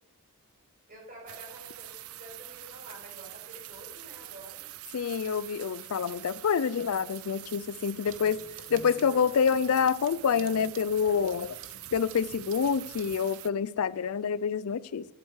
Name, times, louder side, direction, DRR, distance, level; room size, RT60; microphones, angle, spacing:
voice 1, 0.9-4.7 7.9-8.3, right 1 dB, 45° right, 5.6 m, -49 dB
sound 1, 1.3-13.5, right 15 dB, 80° right, 0.5 m, -45 dB
voice 2, 4.9-8.4 8.7-11.6 11.9-15.1, left 6 dB, 80° left, 0.4 m, -27 dB
Clock, 8.1-13.2, right 5 dB, 60° right, 0.9 m, -50 dB
11.5 x 8.0 x 6.4 m
head